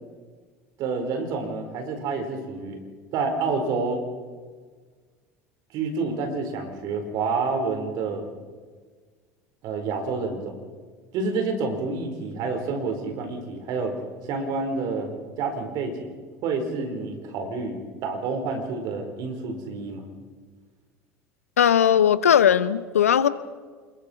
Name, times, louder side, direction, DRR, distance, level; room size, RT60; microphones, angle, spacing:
voice 1, 0.8-2.8 3.1-4.0 5.7-8.3 9.6-10.5 11.1-14.0 14.2-15.1 15.4-16.1 16.4-20.0, right 4 dB, 60° right, 5 dB, 4.5 m, -28 dB
voice 2, 21.6-23.3, left 9 dB, 90° left, 15 dB, 0.8 m, -18 dB
26.5 x 22.0 x 4.6 m, 1.5 s
hypercardioid pair, 75°, 8 cm